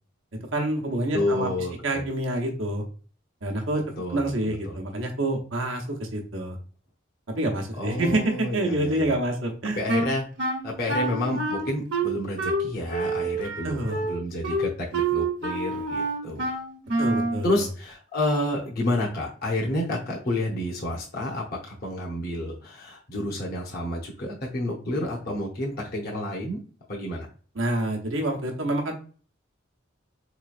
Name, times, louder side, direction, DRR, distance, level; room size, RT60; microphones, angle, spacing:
voice 1, 0.5-1.5 1.8-2.8 3.4-3.8 4.1-6.6 7.3-9.8 13.6-14.0 17.0-17.7 27.5-29.0, right 1 dB, 90° right, 1 dB, 0.8 m, -27 dB
voice 2, 1.1-2.0 4.0-4.8 7.8-9.1 9.8-10.2 10.6-16.5 17.4-26.6 26.9-27.3, left 1 dB, 50° left, -2 dB, 0.7 m, -30 dB
Wind instrument woodwind instrument, 9.9-17.4, right 2 dB, 65° right, 1.1 m, -27 dB
4.0 x 3.0 x 2.4 m, 0.40 s
head